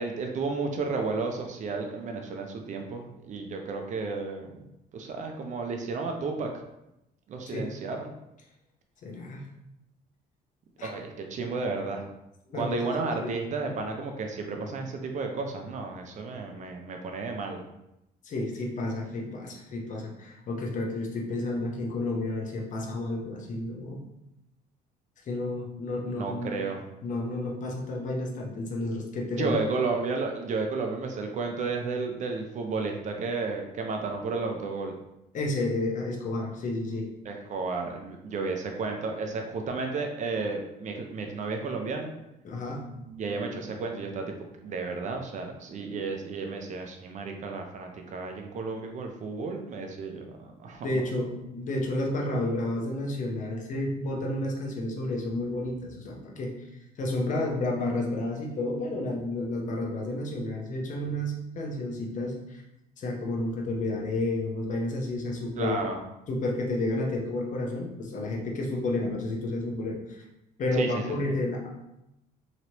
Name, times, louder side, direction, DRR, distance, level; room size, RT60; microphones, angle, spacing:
voice 1, 0.0-4.6 4.9-6.5 7.3-8.1 10.8-12.0 12.5-17.6 26.1-26.8 29.4-34.9 37.3-42.1 43.2-44.4 44.6-51.0 65.6-66.0 70.7-71.2, right 4 dB, 45° right, 3 dB, 0.5 m, -32 dB
voice 2, 9.0-9.5 10.8-10.9 12.5-12.8 13.2-13.3 18.2-24.0 25.3-26.5 27.0-29.6 35.3-37.1 42.4-43.4 50.8-56.5 57.0-62.6 63.0-65.8 66.3-70.2 70.6-71.7, left 2 dB, 50° left, 0 dB, 0.8 m, -31 dB
3.0 x 3.0 x 2.8 m, 0.87 s
cardioid pair, 110°, 17 cm